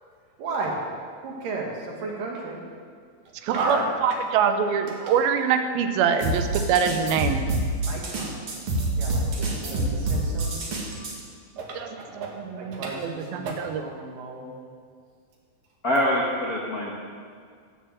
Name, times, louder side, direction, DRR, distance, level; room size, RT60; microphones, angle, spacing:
voice 1, 0.4-0.8 1.2-2.6 3.5-3.9 7.8-8.4 8.9-10.7 11.6-14.5, right 3 dB, 65° right, -1 dB, 3.4 m, -33 dB
voice 2, 3.4-7.5 11.8-11.9 12.2-13.8, right 7 dB, 80° right, 8 dB, 2.6 m, -24 dB
sound 1, 6.2-11.1, right 2 dB, 45° right, 2.3 m, -27 dB
voice 3, 15.8-16.9, equal, 80° left, -4 dB, 0.8 m, -24 dB
14.5 x 6.9 x 7.7 m, 2.1 s
omnidirectional pair, 4.3 m